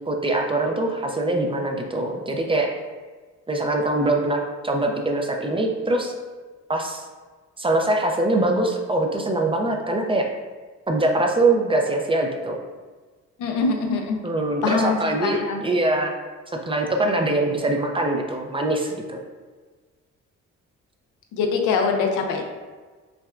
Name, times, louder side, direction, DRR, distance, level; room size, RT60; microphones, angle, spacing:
voice 1, 0.1-2.7 3.5-6.1 6.7-7.1 7.6-10.3 10.9-12.6 14.2-16.2 16.5-19.2, right 2 dB, 20° right, 2 dB, 0.4 m, -23 dB
voice 2, 13.4-14.2 14.6-15.6 21.3-22.5, left 4 dB, 85° left, 3 dB, 0.6 m, -23 dB
5.8 x 2.2 x 2.4 m, 1.4 s
cardioid pair, 90°, 30 cm